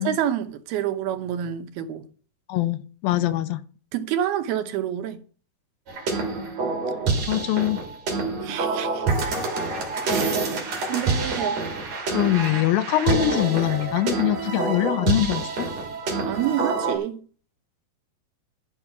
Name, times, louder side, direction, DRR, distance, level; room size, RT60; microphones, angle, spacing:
voice 1, 0.0-2.0 3.9-5.2 8.4-9.1 10.1-10.4 10.9-11.6 16.2-17.2, right 10 dB, 80° right, 3.0 m, -28 dB
voice 2, 2.5-3.6 7.3-7.8 12.1-15.7, left 14 dB, 75° left, 2.5 m, -23 dB
sound 1, 5.9-17.0, right 4 dB, 45° right, 3.9 m, -27 dB
12.0 x 6.3 x 6.0 m
omnidirectional pair, 4.4 m